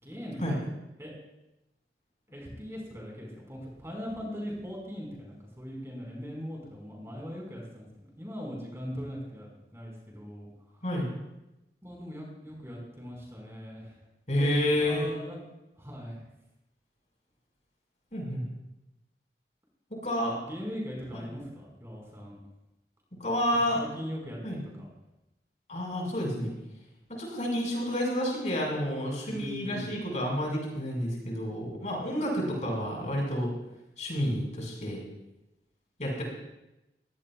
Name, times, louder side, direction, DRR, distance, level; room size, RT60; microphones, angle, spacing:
voice 1, 0.0-0.6 1.0-1.1 2.3-10.5 10.7-10.8 11.8-14.0 14.4-14.5 14.8-15.4 15.7-16.2 20.4-22.4 23.8-24.9 29.3-29.9, equal, 15° right, -2 dB, 5.0 m, -40 dB
voice 2, 14.3-15.1 18.1-18.4 20.0-20.4 23.2-23.8 24.4-24.6 25.7-26.5 27.1-33.5 34.0-35.0 36.0-36.2, equal, 45° left, -1 dB, 5.4 m, -29 dB
23.0 x 17.5 x 2.4 m, 0.93 s
head